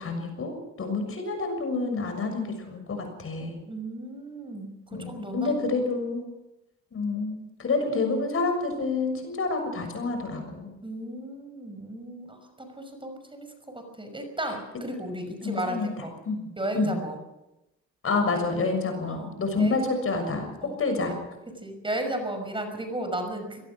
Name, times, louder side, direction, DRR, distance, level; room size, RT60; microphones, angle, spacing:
voice 1, 0.0-3.5 4.9-6.2 6.9-10.7 15.4-15.9 16.2-16.5 16.7-16.9 18.0-20.5 20.8-21.1, left 3 dB, 45° left, 6 dB, 6.7 m, -28 dB
voice 2, 3.7-5.6 10.8-16.1 16.6-17.2 19.1-19.8 20.6-20.7 21.1-21.2 21.6-23.6, right 1 dB, 15° right, 6 dB, 5.8 m, -35 dB
23.5 x 18.5 x 6.3 m, 0.96 s
cardioid pair, 90°, 30 cm